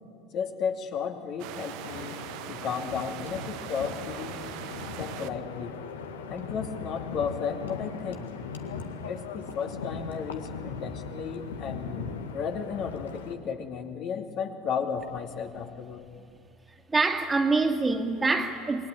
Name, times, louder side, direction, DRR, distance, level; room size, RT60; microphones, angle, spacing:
voice 1, 0.3-2.2 2.5-4.4 5.0-5.7 6.3-8.3 9.0-16.0, left 6 dB, 50° left, 3 dB, 2.6 m, -34 dB
sound 1, 1.4-5.3, right 14 dB, 55° right, 1.0 m, -41 dB
Wind, 1.5-13.3, left 5 dB, 75° left, 1.8 m, -39 dB
voice 2, 16.9-18.9, right 3 dB, 20° right, 5 dB, 2.2 m, -25 dB
27.5 x 21.5 x 9.0 m, 2.2 s
figure-of-eight pair, 70°, 0 cm